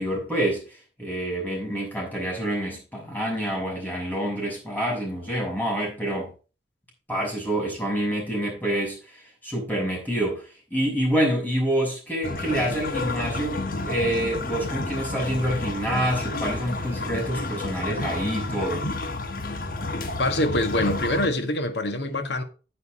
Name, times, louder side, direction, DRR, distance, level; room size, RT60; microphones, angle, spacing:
voice 1, 0.0-6.3 7.1-18.9, right 1 dB, 10° left, 6.0 m, -27 dB
sound 1, 12.2-21.3, left 2 dB, 55° left, 1.3 m, -30 dB
voice 2, 20.2-22.4, left 1 dB, 85° left, 1.7 m, -25 dB
9.5 x 9.5 x 3.7 m
head